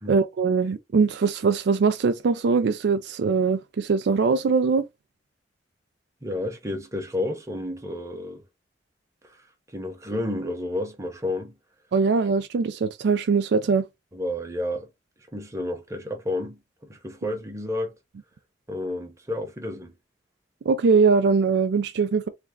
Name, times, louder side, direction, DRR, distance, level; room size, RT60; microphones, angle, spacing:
voice 1, 0.1-4.8 11.9-13.8 20.7-22.3, right 5 dB, 65° right, 0.4 m, -22 dB
voice 2, 6.2-8.4 9.7-11.5 14.1-14.9 15.3-16.6 16.9-17.9 18.7-19.9, left 1 dB, 15° right, 0.8 m, -31 dB
3.3 x 2.2 x 3.6 m
head